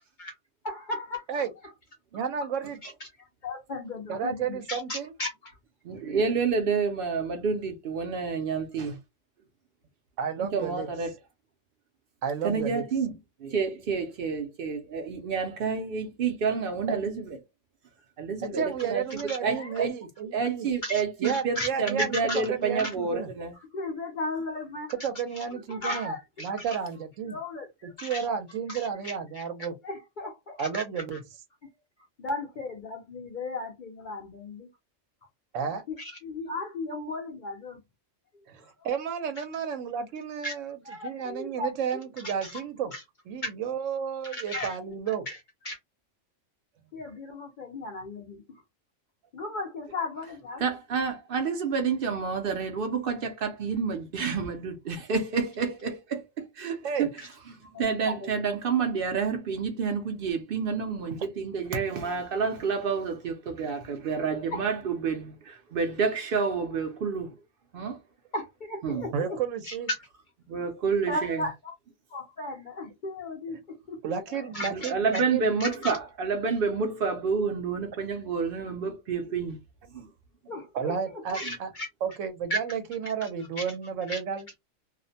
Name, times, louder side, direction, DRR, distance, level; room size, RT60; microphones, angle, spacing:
voice 1, 0.6-1.4 2.8-2.9 3.4-5.6 19.3-19.9 20.8-21.7 22.0-22.4 22.8-22.9 23.7-24.9 25.3-26.8 27.3-28.3 28.7-30.8 31.1-31.2 32.2-34.7 35.9-37.8 39.4-39.5 40.4-40.5 40.8-42.6 42.9-43.0 43.4-43.5 44.2-45.4 45.6-45.8 46.9-48.6 49.3-50.6 57.2-57.3 57.6-58.4 64.5-64.6 68.3-69.4 69.6-70.1 71.1-71.7 72.1-74.0 74.3-75.2 75.6-75.9 80.5-81.9 82.5-82.6 83.0-83.3 83.6-83.7 84.1-84.2, left 1 dB, 55° left, 0.5 m, -36 dB
voice 2, 2.1-2.8 4.1-5.1 10.2-10.9 12.2-12.8 16.9-17.0 18.4-20.7 21.2-22.1 22.5-23.3 25.0-26.1 26.4-27.4 27.8-29.7 30.6-31.2 35.5-35.8 38.5-40.8 41.0-42.9 43.3-45.3 56.8-57.1 69.1-69.9 74.0-75.5 80.7-81.7 82.0-84.4, right 7 dB, 85° right, 1.0 m, -32 dB
voice 3, 5.8-9.0 10.4-11.1 12.4-17.4 18.2-19.9 20.3-23.5 50.6-67.3 67.7-68.0 68.8-69.1 70.5-71.4 74.6-79.6 79.9-80.1 81.4-81.5, right 5 dB, 60° right, 0.6 m, -29 dB
2.4 x 2.1 x 2.6 m
omnidirectional pair, 1.3 m